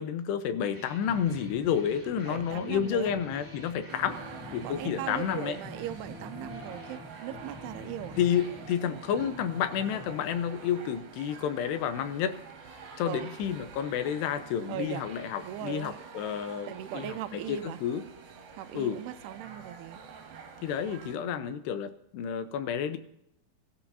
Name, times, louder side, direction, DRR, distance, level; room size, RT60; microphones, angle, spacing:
voice 1, 0.0-4.2 4.5-5.6 8.2-12.4 13.0-18.0 18.7-19.0 20.6-23.0, left 8 dB, 85° left, 10 dB, 3.0 m, -30 dB
sound 1, 0.7-11.3, left 1 dB, 10° right, 1.3 m, -46 dB
voice 2, 2.2-3.1 4.6-8.2 13.0-13.3 14.7-15.0 15.4-16.0 16.4-17.8 18.6-20.0 21.2-21.6, right 13 dB, 80° right, 12 dB, 2.6 m, -39 dB
sound 2, 3.9-21.2, right 5 dB, 65° right, 3.4 m, -47 dB
23.0 x 13.0 x 2.7 m, 0.79 s
omnidirectional pair, 4.7 m